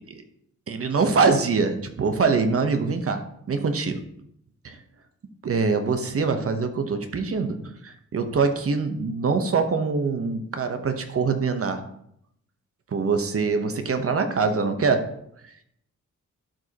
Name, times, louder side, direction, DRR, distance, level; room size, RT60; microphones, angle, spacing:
voice 1, 0.7-4.0 4.6-4.8 5.4-7.6 7.8-11.9 12.9-15.2, right 4 dB, 45° right, 7 dB, 0.9 m, -24 dB
12.0 x 5.1 x 2.9 m, 0.73 s
wide cardioid pair, 130°, 31 cm